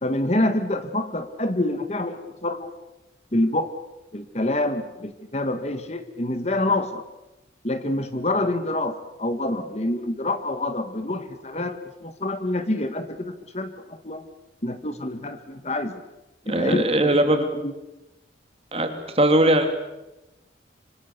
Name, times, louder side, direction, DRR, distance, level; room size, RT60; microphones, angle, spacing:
voice 1, 0.0-2.7 3.3-3.7 4.1-7.1 7.6-14.3 14.6-16.0 16.4-17.7, left 1 dB, 35° left, 9 dB, 1.7 m, -27 dB
voice 2, 16.5-17.5 18.7-19.7, right 1 dB, 35° right, 6 dB, 3.0 m, -20 dB
26.0 x 26.0 x 6.9 m, 0.98 s
head